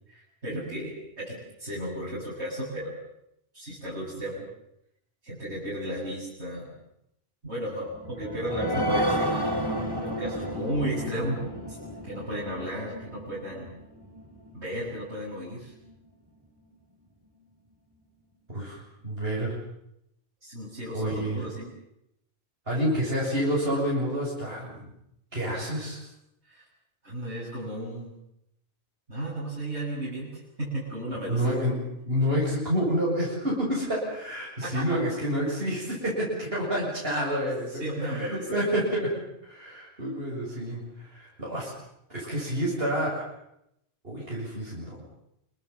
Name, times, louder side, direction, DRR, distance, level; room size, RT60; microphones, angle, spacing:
voice 1, 0.1-2.9 3.5-4.5 5.2-6.7 7.4-9.5 10.0-11.4 11.7-11.8 12.0-13.7 14.5-15.7 20.4-21.7 25.5-25.7 26.4-26.6 27.0-28.1 29.1-31.4 34.6-35.0 37.8-38.6, right 1 dB, 80° right, -7 dB, 8.2 m, -34 dB
sound 1, 7.9-15.0 15.4-15.5 15.9-16.0, equal, 20° right, 3.4 m, -32 dB
voice 2, 18.5-19.5 20.9-21.4 22.7-24.9 25.3-26.0 31.3-31.7 32.1-39.1 39.4-41.7 42.1-43.3 44.0-45.0, equal, 60° right, -5 dB, 7.7 m, -29 dB
29.0 x 22.5 x 7.3 m, 0.80 s
omnidirectional pair, 1.1 m